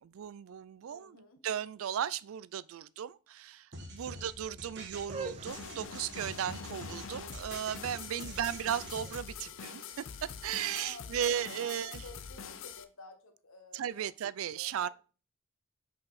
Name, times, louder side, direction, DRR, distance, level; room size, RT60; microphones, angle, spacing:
voice 1, 0.0-12.0 13.7-14.9, right 9 dB, 80° right, 0.3 m, -36 dB
voice 2, 0.9-1.4 4.1-4.5 8.1-8.6 10.7-14.1 14.4-14.9, left 2 dB, 85° left, 1.3 m, -54 dB
sound 1, 3.7-9.2, right 1 dB, 55° right, 1.4 m, -46 dB
sound 2, 4.9-10.9, right 4 dB, 30° right, 0.5 m, -48 dB
sound 3, 5.5-12.8, left 6 dB, 70° left, 0.6 m, -45 dB
5.8 x 5.2 x 4.0 m
head